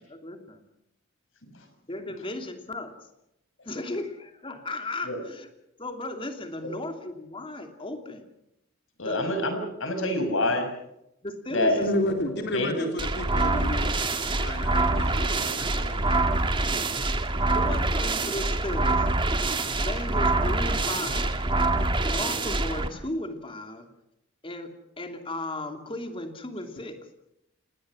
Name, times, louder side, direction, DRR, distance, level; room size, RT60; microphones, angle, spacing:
voice 1, 0.1-0.6 1.9-2.9 3.6-5.5 5.8-8.2 9.0-9.2 11.2-12.9 14.7-14.8 17.5-19.1 19.7-21.4 22.0-23.9 24.4-27.0, left 2 dB, 25° left, 5 dB, 2.9 m, -35 dB
voice 2, 9.0-10.7 11.5-11.8 12.4-12.9, left 1 dB, 75° left, 7 dB, 6.2 m, -27 dB
voice 3, 11.8-14.0 14.3-16.2, left 1 dB, 60° left, 4 dB, 3.5 m, -32 dB
sound 1, 13.0-22.9, right 2 dB, 25° right, 1.8 m, -25 dB
27.5 x 20.0 x 6.3 m, 0.84 s
head